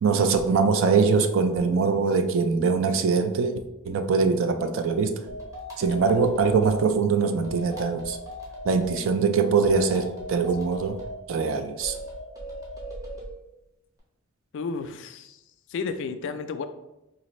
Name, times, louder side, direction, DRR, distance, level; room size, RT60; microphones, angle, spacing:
voice 1, 0.0-3.6 3.8-5.2 5.8-8.2 8.6-11.0 11.3-11.9, right 5 dB, 65° right, 7 dB, 0.4 m, -22 dB
sound 1, 5.3-6.8 7.4-9.0 9.6-11.2 11.8-13.3, equal, 15° right, 0.9 m, -38 dB
voice 2, 14.5-15.4 15.7-16.6, left 4 dB, 60° left, 9 dB, 0.3 m, -32 dB
4.0 x 2.5 x 3.0 m, 0.92 s
head